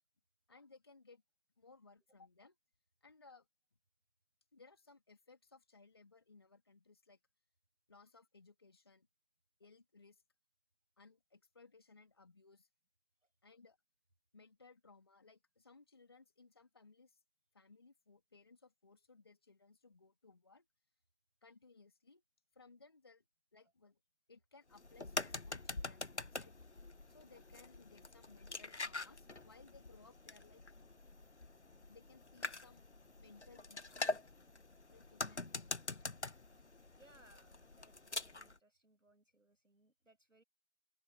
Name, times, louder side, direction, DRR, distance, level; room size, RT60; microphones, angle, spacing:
voice 1, 0.5-1.2 1.6-2.6 3.0-3.5 4.5-7.2 7.9-9.1 9.6-10.2 11.0-12.7 13.4-13.8 14.3-17.2 17.5-20.6 21.4-22.2 22.5-23.2 23.5-24.0 24.3-26.5 27.1-30.6 31.9-32.8 33.2-34.2 34.9-36.2, left 4 dB, 20° left, 2.7 m, -63 dB
sound 1, 24.7-38.6, left 3 dB, 55° left, 1.2 m, -45 dB
voice 2, 37.0-40.4, right 1 dB, 70° right, 7.3 m, -67 dB
open air
figure-of-eight pair, 170°, 41 cm